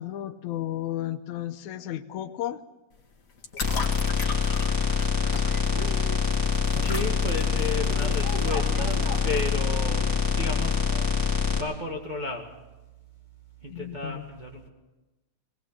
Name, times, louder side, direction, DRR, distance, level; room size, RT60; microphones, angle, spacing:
voice 1, 0.0-2.6 13.7-14.3, left 12 dB, 80° left, 9 dB, 2.2 m, -33 dB
sound 1, 2.9-9.6, left 4 dB, 30° left, 1.9 m, -40 dB
sound 2, 3.6-11.6, left 5 dB, 5° left, 2.5 m, -25 dB
sound 3, 5.2-11.1, right 1 dB, 50° right, 3.4 m, -41 dB
voice 2, 6.8-10.8 11.5-12.5 13.6-14.7, left 2 dB, 20° right, -1 dB, 1.6 m, -33 dB
19.5 x 19.5 x 7.4 m, 1.1 s
omnidirectional pair, 3.3 m